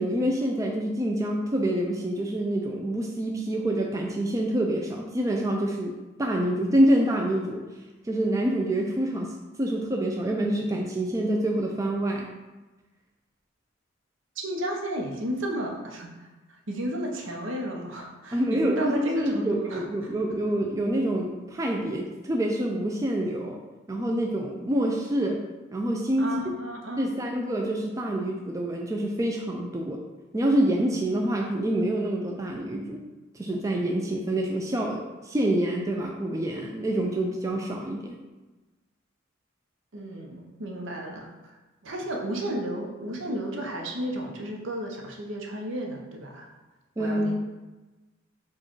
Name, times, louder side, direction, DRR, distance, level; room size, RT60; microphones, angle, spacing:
voice 1, 0.0-7.6 8.1-12.3 18.3-23.6 23.9-25.4 25.7-26.3 27.0-30.0 30.3-33.0 33.3-38.2 47.0-47.4, right 1 dB, 15° right, 1 dB, 0.3 m, -26 dB
voice 2, 14.4-16.3 16.7-19.8 26.2-27.1 39.9-41.6 41.8-46.5 47.0-47.4, right 1 dB, 70° right, 1 dB, 0.8 m, -33 dB
4.5 x 2.4 x 4.5 m, 1.2 s
head